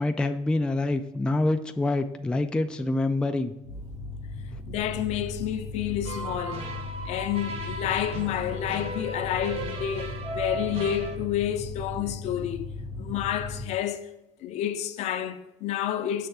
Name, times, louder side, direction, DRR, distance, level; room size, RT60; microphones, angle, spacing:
voice 1, 0.0-3.5, left 2 dB, 5° left, 0.3 m, -26 dB
sound 1, 3.6-13.6, left 3 dB, 75° right, 1.7 m, -37 dB
voice 2, 4.7-6.7 7.1-12.7 13.0-14.0 14.4-16.3, left 10 dB, 70° left, 0.6 m, -29 dB
sound 2, 6.0-11.2, right 2 dB, 60° right, 0.9 m, -36 dB
6.5 x 3.4 x 5.9 m
cardioid pair, 125°, 12 cm